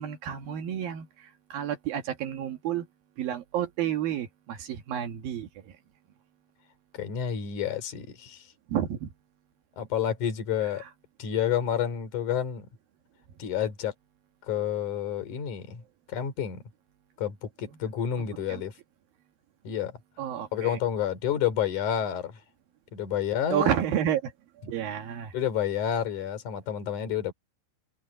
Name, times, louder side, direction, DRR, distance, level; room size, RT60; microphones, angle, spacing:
voice 1, 0.0-2.9 3.2-5.7 8.7-9.1 18.5-18.6 20.2-20.8 23.5-24.3 24.7-25.3, right 10 dB, 65° right, 2.4 m, -30 dB
voice 2, 6.9-8.5 9.8-10.8 11.2-12.7 13.4-13.9 14.5-15.8 16.1-16.6 17.2-18.7 19.6-20.0 20.5-22.4 22.9-23.7 25.3-27.3, left 9 dB, 40° left, 4.3 m, -29 dB
omnidirectional pair, 6.0 m